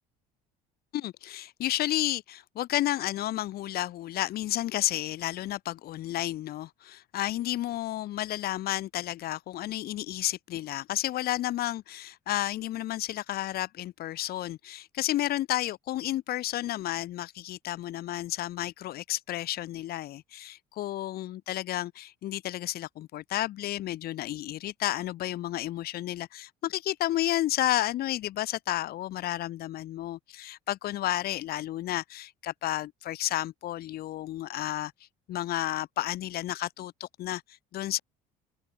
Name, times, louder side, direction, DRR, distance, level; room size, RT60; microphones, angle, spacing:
voice 1, 0.9-34.9 35.3-38.0, left 14 dB, 65° left, 3.5 m, -32 dB
open air
supercardioid pair, 95°, 17 cm